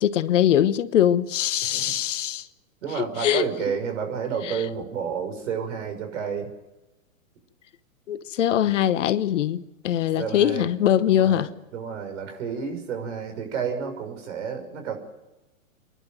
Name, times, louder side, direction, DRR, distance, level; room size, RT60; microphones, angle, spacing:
voice 1, 0.0-2.5 3.0-3.4 4.5-4.6 8.1-11.5, left 11 dB, 60° left, 1.1 m, -22 dB
voice 2, 1.6-1.9 2.8-6.5 8.6-8.8 10.2-10.7 11.1-15.0, right 6 dB, 55° right, 6.2 m, -31 dB
27.0 x 11.5 x 9.3 m
hypercardioid pair, 135°, 42 cm